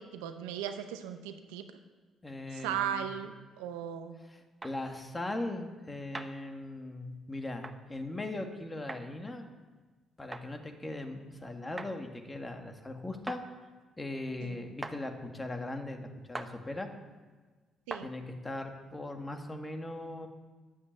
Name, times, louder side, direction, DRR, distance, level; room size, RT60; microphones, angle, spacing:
voice 1, 0.0-1.7 2.5-4.2 14.4-14.6 17.9-18.1, right 9 dB, 85° right, 9 dB, 0.8 m, -37 dB
voice 2, 2.2-3.1 4.6-9.5 10.2-13.4 14.0-16.9 18.0-20.3, left 2 dB, 20° left, 5 dB, 1.9 m, -39 dB
sound 1, 4.6-4.8 6.1-6.3 7.6-7.8 8.9-9.0 10.3-10.5 11.8-11.9 13.3-13.4 14.8-15.0 16.3-16.5 17.9-18.1, right 2 dB, 25° right, 1.0 m, -40 dB
10.5 x 8.2 x 7.5 m, 1.3 s
hypercardioid pair, 55°, 0 cm